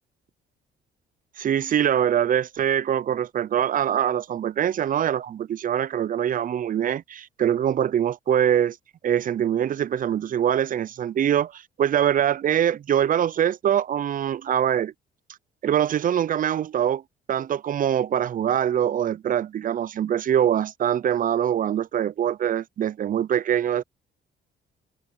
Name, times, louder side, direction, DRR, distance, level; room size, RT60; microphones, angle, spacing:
voice 1, 1.4-8.8 9.0-14.9 15.6-17.0 17.3-23.8, right 10 dB, 45° right, 0.5 m, -23 dB
cardioid pair, 90°, 20 cm